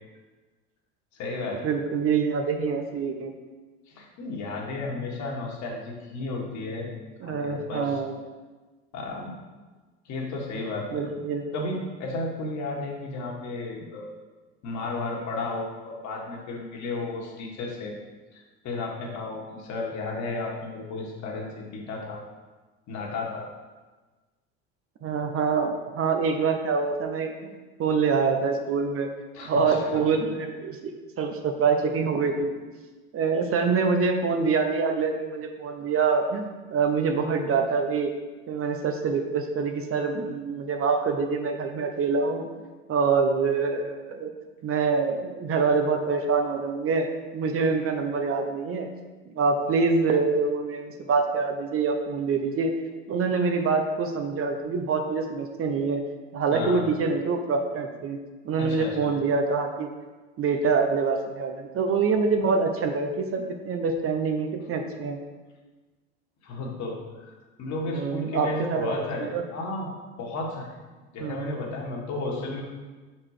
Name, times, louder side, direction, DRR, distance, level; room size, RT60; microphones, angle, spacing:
voice 1, 1.1-1.6 3.9-6.9 7.2-8.0 8.9-9.4 10.1-11.0 11.5-14.1 14.6-17.9 18.3-21.5 21.7-22.2 22.9-23.5 29.3-30.0 56.5-56.9 58.6-59.1 66.4-69.9 70.2-70.7 71.1-72.6, left 2 dB, 55° left, -1 dB, 1.7 m, -33 dB
voice 2, 1.6-3.3 7.2-8.1 10.9-11.4 25.0-27.3 27.8-29.1 29.5-32.5 33.1-38.1 38.5-42.5 42.9-44.3 44.6-47.1 47.3-48.9 49.3-52.7 53.1-56.0 56.3-58.2 58.4-59.9 60.4-65.2 67.9-68.9 69.2-69.4 71.2-71.5, right 4 dB, 40° right, 5 dB, 0.8 m, -25 dB
5.7 x 4.4 x 4.9 m, 1.3 s
hypercardioid pair, 85°, 34 cm